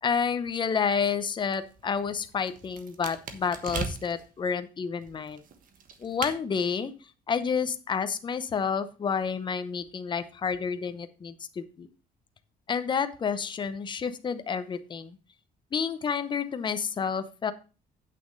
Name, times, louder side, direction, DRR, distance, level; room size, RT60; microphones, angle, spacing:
voice 1, 0.0-5.4 6.0-6.9 7.3-11.9 12.7-15.2 15.7-17.5, left 6 dB, 30° left, 11 dB, 0.8 m, -29 dB
sound 1, 1.4-4.3 5.0-6.4, right 6 dB, 55° right, 1.3 m, -39 dB
8.7 x 6.4 x 5.3 m, 0.34 s
cardioid pair, 160°, 17 cm